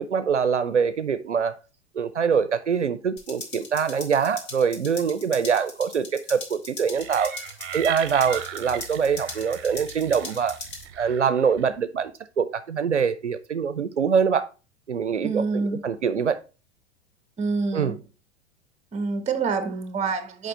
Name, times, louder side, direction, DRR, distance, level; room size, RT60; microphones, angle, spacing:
voice 1, 0.0-1.5 1.9-7.4 7.7-10.6 11.0-12.1 12.4-14.5 14.9-15.4 15.8-16.4 17.7-18.0, right 6 dB, 85° right, 0.6 m, -24 dB
sound 1, 3.2-10.8, left 3 dB, 30° left, 1.9 m, -40 dB
sound 2, 6.9-11.8, right 10 dB, 50° right, 0.9 m, -38 dB
voice 2, 15.2-15.8 17.4-18.0 18.9-20.5, right 4 dB, 20° right, 1.2 m, -27 dB
6.6 x 5.0 x 4.2 m
figure-of-eight pair, 95°, 34 cm